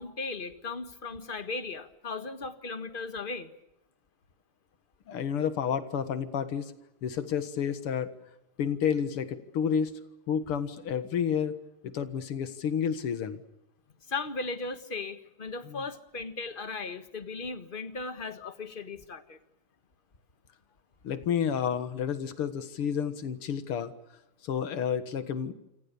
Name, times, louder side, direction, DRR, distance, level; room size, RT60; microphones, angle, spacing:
voice 1, 0.0-3.5 14.1-19.4, left 3 dB, 25° left, 10 dB, 1.6 m, -37 dB
voice 2, 5.1-6.7 7.0-8.1 8.6-10.0 10.3-11.6 11.8-13.4 15.7-15.8 18.4-18.5 21.0-23.9 24.4-25.5, left 7 dB, 85° left, 11 dB, 2.5 m, -30 dB
28.5 x 25.5 x 6.9 m, 0.89 s
omnidirectional pair, 2.4 m